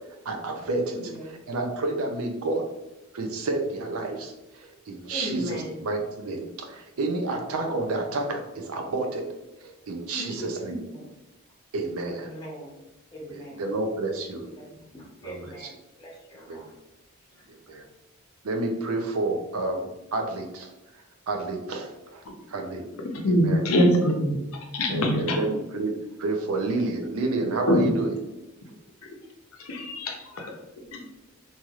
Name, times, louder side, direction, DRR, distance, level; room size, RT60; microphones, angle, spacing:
voice 1, 0.3-2.7 3.1-9.3 9.6-10.8 11.7-12.3 13.6-14.5 15.2-15.7 16.5-16.7 17.5-17.8 18.4-20.7 21.3-22.2 22.5-22.9 23.3-23.6 24.9-28.1, right 2 dB, 85° right, 3 dB, 0.5 m, -30 dB
voice 2, 0.9-1.3 5.1-5.8 10.1-10.5 10.8-11.1 12.2-12.8 13.1-13.7 14.4-15.7 16.0-16.6, equal, 20° left, -4 dB, 1.0 m, -39 dB
voice 3, 23.1-24.5 24.7-25.4 27.7-27.9 29.7-30.1, equal, 80° left, 2 dB, 0.6 m, -22 dB
3.1 x 2.8 x 2.3 m, 0.98 s
head